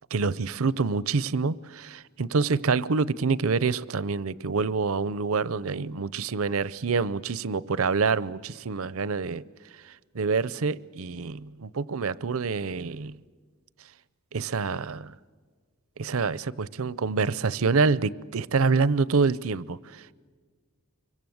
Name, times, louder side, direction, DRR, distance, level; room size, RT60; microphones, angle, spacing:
voice 1, 0.1-9.4 10.1-13.2 14.3-15.1 16.0-20.1, right 4 dB, 70° right, 0.6 m, -26 dB
25.5 x 23.0 x 7.9 m
head